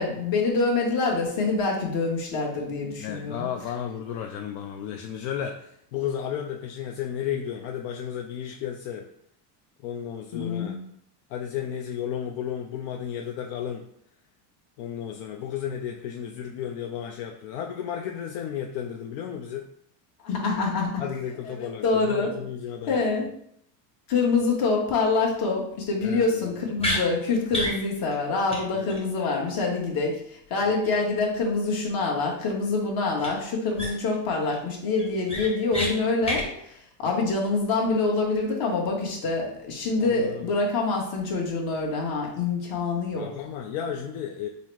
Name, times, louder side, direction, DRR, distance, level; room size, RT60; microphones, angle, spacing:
voice 1, 0.0-3.5 10.3-10.8 20.2-21.0 21.4-22.3 22.9-23.3 24.1-43.3, left 3 dB, 45° left, 0 dB, 1.2 m, -26 dB
voice 2, 3.0-9.1 9.8-10.8 11.3-13.9 14.8-19.6 21.0-23.0 26.0-26.5 28.7-29.0 30.6-30.8 40.0-40.6 43.1-44.5, left 9 dB, 70° left, 2 dB, 0.5 m, -33 dB
sound 1, 26.8-27.0 27.5-27.8 28.1-28.2 28.5-28.6 28.9-29.0 33.2-33.3 33.8-34.1 34.5-34.6 35.0-35.9 36.2-36.5, left 1 dB, 10° left, 0.8 m, -28 dB
4.0 x 2.1 x 4.5 m, 0.71 s
cardioid pair, 135°, 49 cm